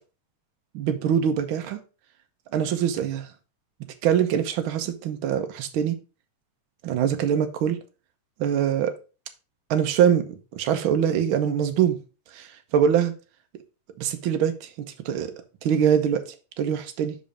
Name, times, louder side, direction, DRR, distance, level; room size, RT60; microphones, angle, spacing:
voice 1, 0.7-1.8 2.5-3.3 4.0-6.0 6.8-7.8 8.4-8.9 9.7-12.0 12.3-12.5 12.7-13.1 14.0-14.7 15.0-15.3 15.6-16.2 16.6-17.2, right 8 dB, 65° right, 7 dB, 1.3 m, -23 dB
5.7 x 5.3 x 5.0 m, 0.32 s
omnidirectional pair, 3.4 m